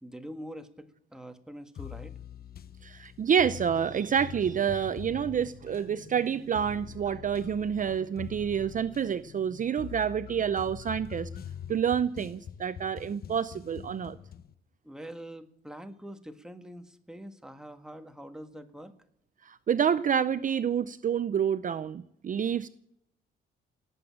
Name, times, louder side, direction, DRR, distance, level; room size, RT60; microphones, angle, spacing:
voice 1, 0.0-2.2 14.8-18.9, equal, 5° right, 7 dB, 1.6 m, -44 dB
sound 1, 1.8-14.5, left 8 dB, 50° left, 0.8 m, -44 dB
voice 2, 2.8-11.3 11.7-14.2 19.4-22.7, right 8 dB, 40° right, 14 dB, 0.6 m, -28 dB
18.0 x 8.0 x 8.7 m, 0.74 s
cardioid pair, 90°, 20 cm